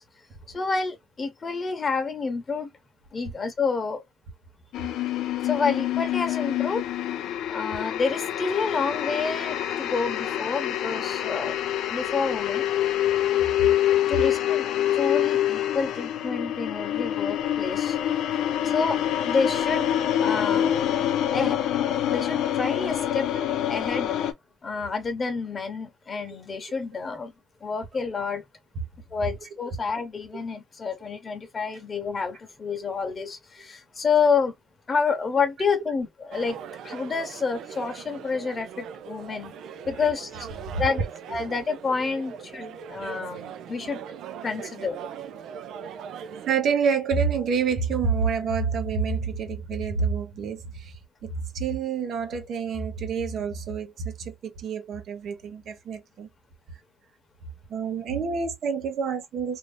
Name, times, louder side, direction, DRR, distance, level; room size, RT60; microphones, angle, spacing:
voice 1, 0.5-2.7 3.1-4.0 5.4-6.8 7.5-12.7 14.1-14.7 14.9-18.0 18.6-19.0 19.3-19.9 20.2-20.7 21.3-21.6 22.1-23.3 23.7-24.1 24.6-27.3 27.6-28.4 29.1-34.5 34.9-36.6 36.8-39.5 39.9-40.5 40.8-41.0 41.3-44.0 44.4-45.0, left 5 dB, 30° left, 0.9 m, -28 dB
sound 1, 4.7-24.3, left 11 dB, 90° left, 0.5 m, -26 dB
sound 2, 36.3-46.5, right 7 dB, 85° right, 0.5 m, -40 dB
voice 2, 40.7-41.1 46.5-51.0 51.2-56.3 57.7-59.6, right 5 dB, 60° right, 1.0 m, -28 dB
2.8 x 2.5 x 3.3 m
cardioid pair, 135°, 0 cm